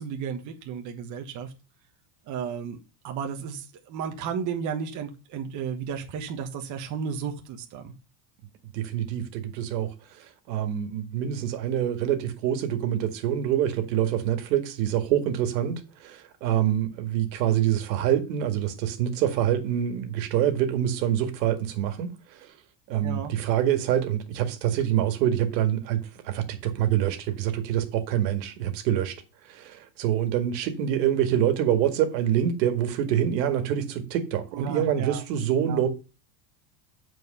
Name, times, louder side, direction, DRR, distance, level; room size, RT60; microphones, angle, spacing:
voice 1, 0.0-1.5 2.3-2.8 3.0-7.9 23.0-23.3 34.5-35.2 35.7-35.8, right 7 dB, 35° right, 1.3 m, -33 dB
voice 2, 8.7-9.9 10.5-22.1 22.9-29.1 29.5-35.9, right 10 dB, 85° right, 2.0 m, -26 dB
8.0 x 4.6 x 6.6 m
cardioid pair, 155°, 50 cm